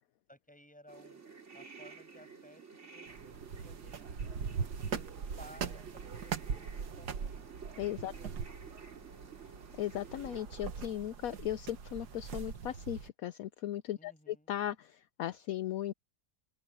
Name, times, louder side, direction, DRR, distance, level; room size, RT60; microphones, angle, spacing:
voice 1, 0.3-1.2 1.5-4.5 5.0-5.1 5.4-7.4 8.1-8.7 14.0-14.5, equal, 5° left, 6.7 m, -58 dB
sound 1, 0.9-10.4, right 5 dB, 45° right, 3.1 m, -52 dB
sound 2, 3.1-13.1, right 6 dB, 85° right, 1.9 m, -41 dB
voice 2, 7.8-8.1 9.8-15.9, left 12 dB, 70° left, 1.0 m, -37 dB
open air
omnidirectional pair, 1.7 m